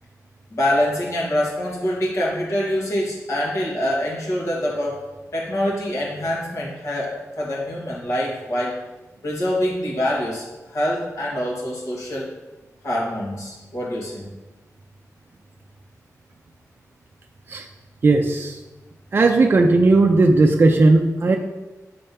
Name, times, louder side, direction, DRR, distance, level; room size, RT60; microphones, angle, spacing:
voice 1, 0.5-5.0 5.3-8.8 9.2-12.3 12.8-14.3, left 1 dB, 55° left, -5 dB, 2.0 m, -25 dB
voice 2, 18.0-18.6 19.1-21.4, right 3 dB, 40° right, 2 dB, 0.5 m, -16 dB
7.5 x 3.4 x 5.5 m, 1.1 s
wide cardioid pair, 180°, 6 cm